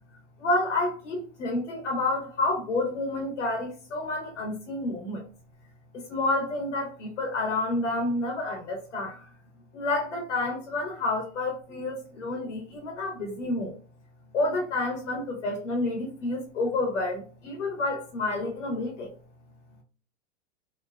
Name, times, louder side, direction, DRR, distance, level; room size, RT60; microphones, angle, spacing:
voice 1, 0.4-5.2 5.9-9.3 9.7-13.7 14.3-19.1, left 2 dB, 90° left, 2 dB, 0.9 m, -29 dB
2.8 x 2.3 x 2.2 m, 0.39 s
hypercardioid pair, 125°, 35 cm